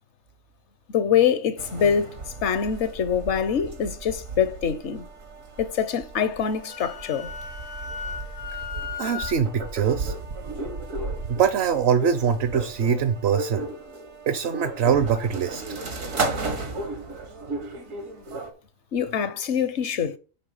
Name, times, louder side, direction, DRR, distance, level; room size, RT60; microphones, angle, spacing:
voice 1, 0.9-5.1 5.6-7.3 18.9-20.2, left 7 dB, 65° left, 1.0 m, -24 dB
sound 1, 1.6-18.5, right 3 dB, 80° right, 1.8 m, -34 dB
Wind instrument woodwind instrument, 6.4-9.4, left 7 dB, 90° left, 1.6 m, -36 dB
voice 2, 9.0-10.1 11.3-13.7 14.3-15.6, right 7 dB, 60° right, 0.9 m, -23 dB
9.7 x 3.5 x 5.4 m
omnidirectional pair, 1.3 m